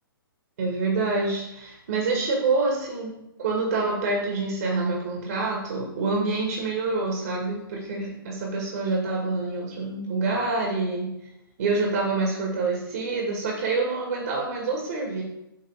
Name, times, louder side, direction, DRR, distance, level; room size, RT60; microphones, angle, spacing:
voice 1, 0.6-3.1 3.4-11.1 11.6-15.2, right 3 dB, 50° right, -1 dB, 2.0 m, -26 dB
8.5 x 3.9 x 4.9 m, 0.87 s
figure-of-eight pair, 125°, 12 cm